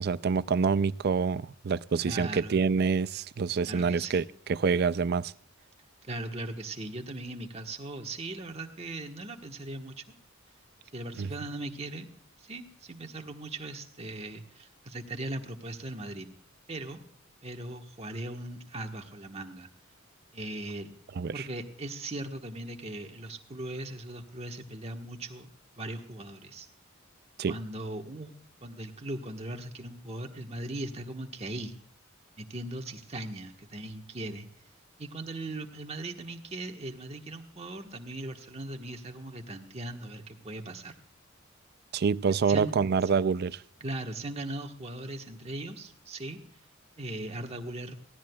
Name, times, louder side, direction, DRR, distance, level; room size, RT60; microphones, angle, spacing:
voice 1, 0.0-5.3 11.2-11.3 21.2-21.5 27.4-27.5 41.9-43.6, right 5 dB, 50° right, 0.4 m, -27 dB
voice 2, 2.0-2.6 3.7-4.3 6.0-10.1 10.9-12.1 12.4-16.3 16.7-17.0 17.4-19.7 20.3-20.9 21.3-25.5 25.8-26.7 27.5-28.3 28.6-31.7 32.4-34.5 35.0-40.9 42.5-42.7 43.8-46.4 47.0-48.0, right 2 dB, 30° right, 1.3 m, -39 dB
19.0 x 15.5 x 2.3 m
head